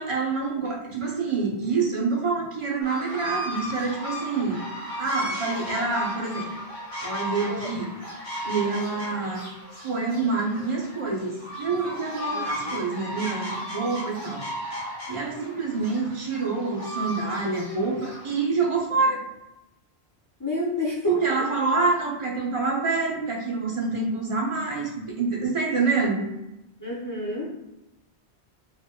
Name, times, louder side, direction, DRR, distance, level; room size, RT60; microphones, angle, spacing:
voice 1, 0.0-6.5 7.0-7.9 8.4-9.4 9.8-14.4 15.1-19.3 21.1-26.2, right 4 dB, 35° right, -2 dB, 0.7 m, -27 dB
sound 1, 2.8-18.4, equal, 90° left, 1.6 m, -35 dB
voice 2, 7.5-7.8 12.3-12.7 20.4-21.3 26.8-27.5, left 2 dB, 20° left, -5 dB, 0.7 m, -30 dB
3.9 x 2.9 x 2.2 m, 0.92 s
omnidirectional pair, 1.1 m